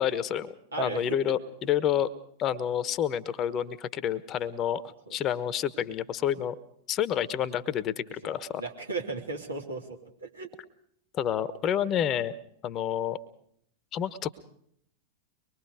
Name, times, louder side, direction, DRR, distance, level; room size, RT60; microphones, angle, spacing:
voice 1, 0.0-2.1 2.4-6.5 6.9-8.6 11.1-12.3 12.6-13.2 13.9-14.3, left 10 dB, 30° left, 15 dB, 1.2 m, -29 dB
voice 2, 0.7-1.0 1.3-1.4 5.1-5.2 8.2-10.5, right 3 dB, 80° right, 0 dB, 3.4 m, -36 dB
24.5 x 21.5 x 5.0 m, 0.68 s
figure-of-eight pair, 90°, 0 cm